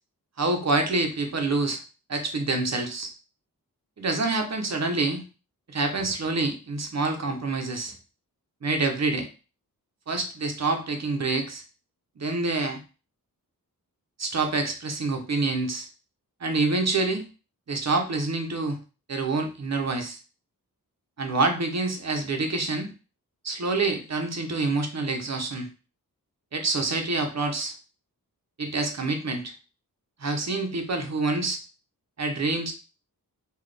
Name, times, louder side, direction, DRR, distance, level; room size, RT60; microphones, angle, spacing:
voice 1, 0.4-1.8 2.1-3.1 4.0-5.2 5.7-8.0 8.6-9.3 10.1-11.6 12.2-12.8 14.2-15.9 16.4-17.2 17.7-18.8 19.1-20.2 21.2-22.9 23.4-25.7 26.5-27.7 28.6-29.5 30.2-31.6 32.2-32.7, right 3 dB, 50° right, 4 dB, 0.8 m, -27 dB
4.0 x 2.4 x 3.3 m, 0.33 s
wide cardioid pair, 85°, 35 cm